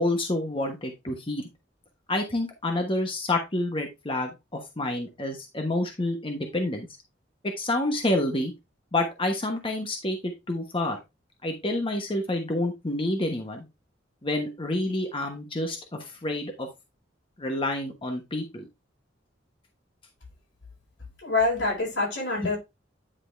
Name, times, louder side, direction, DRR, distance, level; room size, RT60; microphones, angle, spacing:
voice 1, 0.0-1.4 2.1-6.9 7.6-8.5 8.9-11.0 11.4-13.6 14.2-16.7 17.4-18.6 22.4-22.5, left 1 dB, 30° left, 1.1 m, -28 dB
voice 2, 21.2-22.6, left 3 dB, 90° left, 5.2 m, -25 dB
9.9 x 3.9 x 3.3 m
head